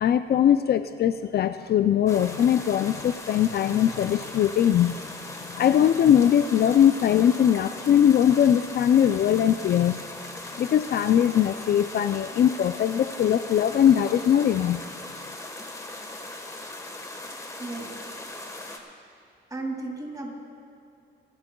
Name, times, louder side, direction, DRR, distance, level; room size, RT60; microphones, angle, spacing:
voice 1, 0.0-5.0 5.5-10.1 10.6-14.8, left 10 dB, 55° left, 11 dB, 0.4 m, -21 dB
sound 1, 2.1-18.8, left 2 dB, 15° left, 1.3 m, -39 dB
voice 2, 17.6-18.0 19.5-20.3, right 2 dB, 20° right, 0 dB, 2.5 m, -34 dB
26.0 x 11.5 x 2.3 m, 2.5 s
cardioid pair, 90°, 20 cm